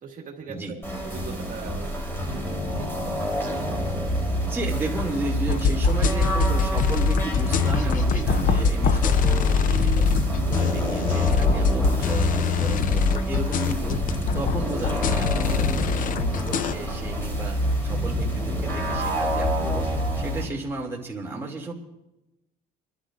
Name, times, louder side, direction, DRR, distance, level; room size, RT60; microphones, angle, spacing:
voice 1, 0.0-0.8 1.0-2.4 2.7-4.2 6.7-6.8, right 5 dB, 55° right, 0 dB, 2.0 m, -41 dB
sound 1, 0.8-20.4, equal, 15° left, 3.5 m, -30 dB
sound 2, 4.0-20.4, equal, 75° left, 6.6 m, -31 dB
voice 2, 4.4-14.0 14.3-19.9 20.1-21.7, right 2 dB, 15° right, -2 dB, 2.5 m, -34 dB
sound 3, 5.5-16.7, left 5 dB, 55° left, 0.6 m, -23 dB
30.0 x 11.5 x 2.5 m, 0.95 s
cardioid pair, 110°, 17 cm